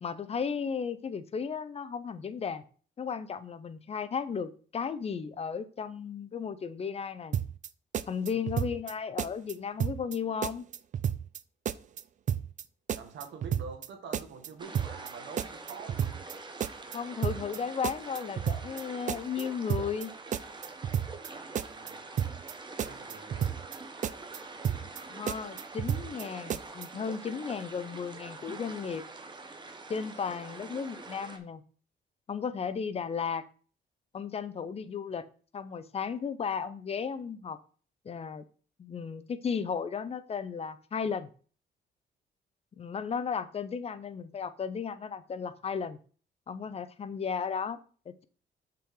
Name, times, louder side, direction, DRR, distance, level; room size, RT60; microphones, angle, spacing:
voice 1, 0.0-2.6 3.0-7.4 8.1-10.6 16.9-20.1 24.7-29.0 29.9-31.6 32.3-33.4 34.1-35.2 35.5-37.6 38.0-38.5 38.8-41.3 42.8-46.0 46.5-47.8, left 6 dB, 35° left, 12 dB, 0.6 m, -35 dB
sound 1, 7.3-7.7 7.9-8.9 9.2-9.5 9.8-10.2 10.4-11.4 11.6-12.0 12.3-12.6 12.9-13.9 14.1-14.5 14.7-15.1 15.4-16.3 16.6-17.0 17.2-17.6 17.8-18.8 19.1-19.4 19.7-20.1 20.3-21.3 21.5-21.9 22.2-22.5 22.8-23.8 24.0-24.4 24.6-25.0 25.3-26.2 26.5-26.9, right 9 dB, 40° right, 0.4 m, -31 dB
voice 2, 8.3-8.6 13.0-16.2 21.4-22.2 22.8-23.5, right 5 dB, 80° right, 4 dB, 1.7 m, -46 dB
sound 2, 14.6-31.4, right 3 dB, 25° right, 1.0 m, -45 dB
6.4 x 5.7 x 3.8 m, 0.41 s
cardioid pair, 130°, 19 cm